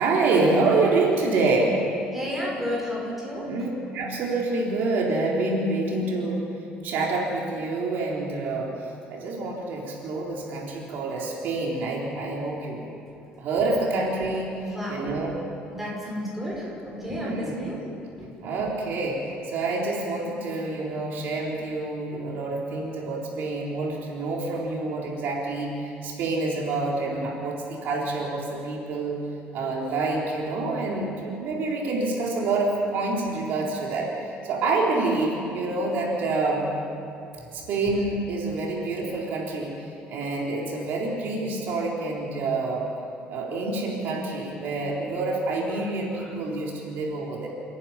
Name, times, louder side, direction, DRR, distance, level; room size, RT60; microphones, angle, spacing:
voice 1, 0.0-1.8 3.4-6.4 6.8-8.7 9.1-12.8 13.4-15.4 17.0-17.5 18.4-29.2 29.5-36.7 37.5-39.8 40.1-42.8 43.3-47.5, right 3 dB, 55° right, -2 dB, 3.8 m, -27 dB
voice 2, 2.1-3.5 14.6-15.2 15.7-17.8 18.2-18.3 37.4-37.5 45.8-46.3, equal, 5° right, -4 dB, 5.9 m, -32 dB
29.5 x 11.0 x 10.0 m, 2.7 s
cardioid pair, 165°, 4 cm